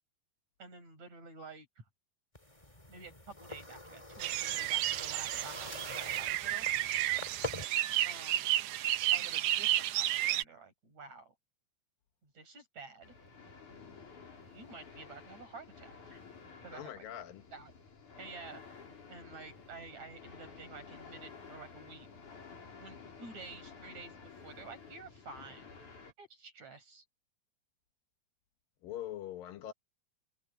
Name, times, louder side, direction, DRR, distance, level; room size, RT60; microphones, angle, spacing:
voice 1, 0.6-1.8 2.9-6.7 8.0-8.5 9.1-11.3 12.2-13.1 14.4-16.2 16.6-17.0 17.5-17.7 18.2-18.6 19.1-22.1 22.8-25.7 26.2-27.0, right 4 dB, 55° right, 8.3 m, -50 dB
sound 1, 2.3-7.6, left 1 dB, 10° left, 2.7 m, -45 dB
sound 2, 4.2-10.4, right 14 dB, 75° right, 1.6 m, -32 dB
sound 3, 13.0-26.1, left 5 dB, 60° left, 6.6 m, -52 dB
voice 2, 16.7-17.4 28.8-29.7, left 11 dB, 85° left, 3.1 m, -42 dB
omnidirectional pair, 3.9 m